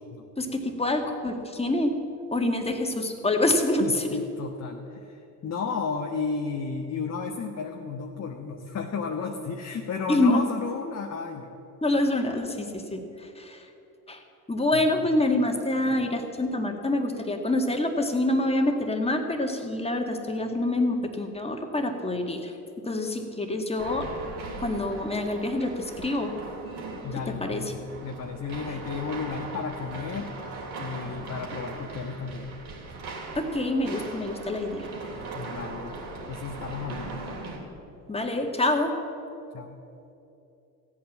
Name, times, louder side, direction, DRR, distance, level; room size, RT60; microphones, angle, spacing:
voice 1, 0.4-2.0 2.3-4.1 10.1-10.4 11.8-13.7 14.1-14.2 14.5-24.1 24.6-26.4 27.4-27.6 33.4-34.9 38.1-38.9, left 1 dB, 15° left, 4 dB, 1.9 m, -26 dB
voice 2, 3.8-11.5 14.7-14.8 27.0-30.3 30.8-32.5 35.3-35.9 36.3-37.2 39.5-39.8, left 5 dB, 35° left, 2 dB, 1.2 m, -33 dB
sound 1, 23.8-37.6, right 3 dB, 60° right, 3.1 m, -39 dB
15.0 x 8.7 x 7.4 m, 2.9 s
hypercardioid pair, 70°, 46 cm